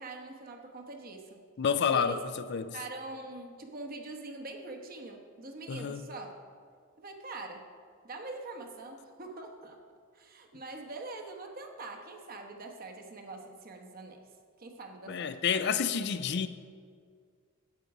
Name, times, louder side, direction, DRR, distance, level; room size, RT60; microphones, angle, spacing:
voice 1, 0.0-1.4 1.9-2.2 2.7-6.3 7.0-7.7 8.0-9.8 10.1-14.2 14.6-15.7, right 2 dB, 45° right, 1.0 m, -44 dB
voice 2, 1.6-2.8 5.7-6.0 15.1-16.5, left 6 dB, 55° left, 0.4 m, -29 dB
9.0 x 8.5 x 4.8 m
head